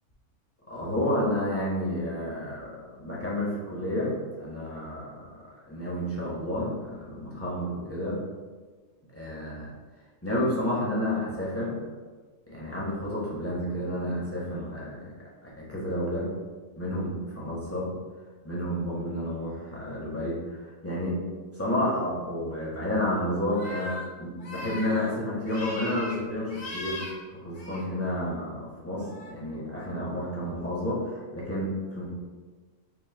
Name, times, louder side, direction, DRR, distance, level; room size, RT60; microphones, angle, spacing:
voice 1, 0.7-4.1 4.4-8.2 9.1-9.7 10.2-11.8 12.5-15.1 15.4-16.3 16.8-17.9 18.4-21.2 21.5-27.0 27.3-32.1, left 1 dB, 10° left, -7 dB, 0.9 m, -30 dB
sound 1, 23.5-24.0 24.4-25.1 25.5-26.2 26.5-27.1 27.5-27.8 28.9-29.3, left 2 dB, 75° left, 1.7 m, -39 dB
5.2 x 2.3 x 3.4 m, 1.4 s
omnidirectional pair, 1.6 m